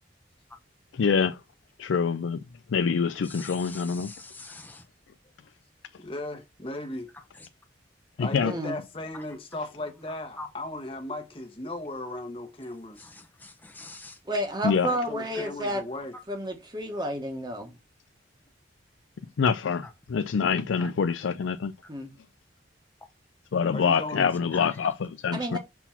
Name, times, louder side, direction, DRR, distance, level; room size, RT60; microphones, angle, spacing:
voice 1, 0.9-1.4 1.8-2.4 2.7-4.1 8.2-8.5 14.6-14.9 19.4-19.8 20.1-21.7 23.5-25.6, left 6 dB, 85° left, 0.4 m, -25 dB
voice 2, 3.2-4.9 7.3-7.5 9.1-9.2 10.1-10.5 13.0-14.2 15.3-15.4 19.8-19.9 20.8-20.9 24.5-24.9, left 2 dB, 10° left, 0.9 m, -44 dB
voice 3, 6.0-7.1 8.2-13.1 14.8-16.1 23.7-24.2, left 1 dB, 30° left, 1.2 m, -37 dB
voice 4, 8.4-8.7 14.2-15.8 16.3-17.8 21.9-22.1 25.3-25.6, equal, 20° right, 1.3 m, -31 dB
5.9 x 4.0 x 5.7 m
head